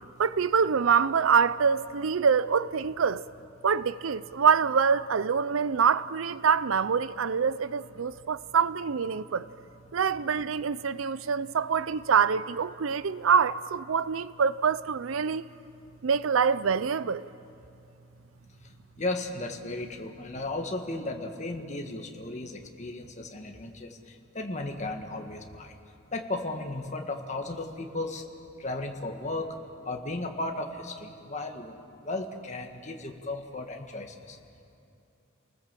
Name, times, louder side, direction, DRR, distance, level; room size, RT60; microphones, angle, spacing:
voice 1, 0.2-3.2 3.6-9.5 9.9-15.4 16.0-17.3, right 6 dB, 90° right, 0.5 m, -25 dB
voice 2, 19.0-25.7 26.1-28.2 28.6-29.6 29.9-31.8 32.0-34.4, left 2 dB, 35° left, 1.7 m, -35 dB
29.0 x 19.5 x 7.5 m
head